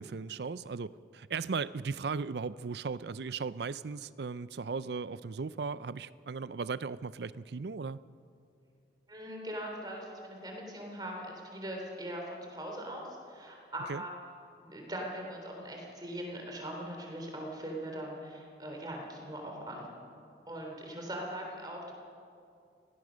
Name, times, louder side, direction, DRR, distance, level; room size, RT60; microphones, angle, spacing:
voice 1, 0.0-8.0 13.9-14.0, right 5 dB, 70° right, 17 dB, 0.5 m, -37 dB
voice 2, 9.1-14.1 14.6-19.9 20.5-21.9, right 1 dB, 25° right, 1 dB, 3.4 m, -41 dB
24.5 x 18.0 x 6.3 m, 2.5 s
head